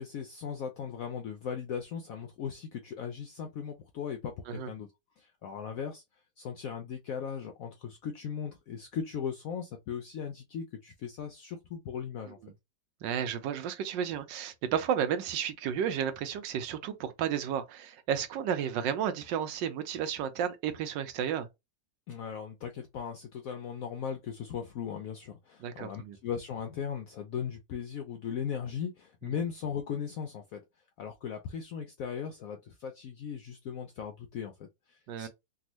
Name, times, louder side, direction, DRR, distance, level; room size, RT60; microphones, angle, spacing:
voice 1, 0.0-4.9 5.2-6.0 6.4-12.4 22.1-30.6 31.0-35.3, left 7 dB, 75° left, 0.7 m, -38 dB
voice 2, 13.0-21.5 25.6-26.2 35.1-35.3, right 8 dB, 85° right, 1.3 m, -32 dB
3.5 x 2.4 x 2.9 m
omnidirectional pair, 2.0 m